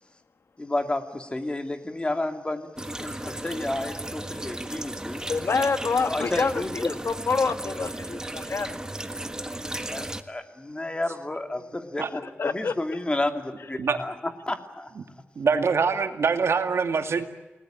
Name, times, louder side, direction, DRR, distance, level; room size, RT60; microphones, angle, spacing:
voice 1, 0.6-5.2 6.0-6.9 9.9-14.1 14.5-14.9, left 2 dB, 25° left, 6 dB, 2.7 m, -31 dB
sound 1, 2.8-10.2, right 1 dB, 15° right, 1.5 m, -35 dB
voice 2, 5.3-8.8 12.1-12.7, left 4 dB, 65° left, 9 dB, 1.6 m, -27 dB
voice 3, 15.4-17.2, right 5 dB, 90° right, 7 dB, 2.3 m, -24 dB
29.0 x 19.5 x 9.0 m, 1.1 s
wide cardioid pair, 105°, 5 cm